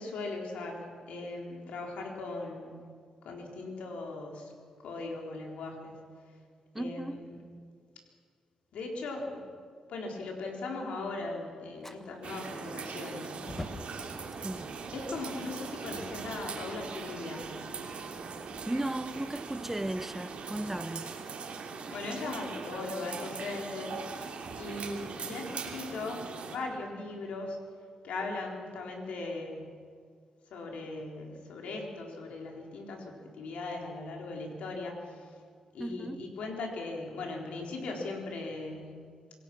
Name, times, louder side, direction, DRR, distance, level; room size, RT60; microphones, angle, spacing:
voice 1, 0.0-2.8 3.2-4.5 4.8-6.0 6.8-7.3 8.7-9.4 9.9-13.4 14.9-17.6 21.9-24.2 24.5-27.6 28.0-29.8 30.5-35.3 35.7-39.0, left 3 dB, 90° left, 3.8 m, -39 dB
voice 2, 6.7-7.3 14.4-14.7 18.7-21.1 35.8-36.3, right 1 dB, 10° right, 0.9 m, -36 dB
Fire, 11.8-20.8, left 1 dB, 15° left, 1.5 m, -50 dB
sound 1, 12.2-26.6, right 5 dB, 70° right, 2.9 m, -41 dB
26.5 x 17.5 x 6.1 m
cardioid pair, 75°, 2 cm